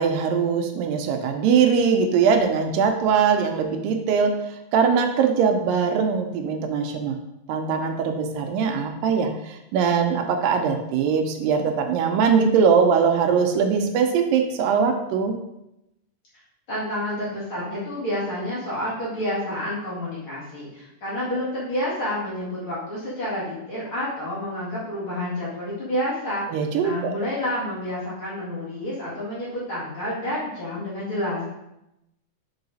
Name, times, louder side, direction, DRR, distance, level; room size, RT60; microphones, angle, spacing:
voice 1, 0.0-4.4 4.7-7.2 7.5-15.4 26.5-27.2, right 6 dB, 80° right, 5 dB, 2.3 m, -21 dB
voice 2, 16.7-26.4 26.8-31.5, left 1 dB, 45° left, -9 dB, 2.2 m, -29 dB
5.7 x 4.7 x 4.0 m, 0.87 s
omnidirectional pair, 4.0 m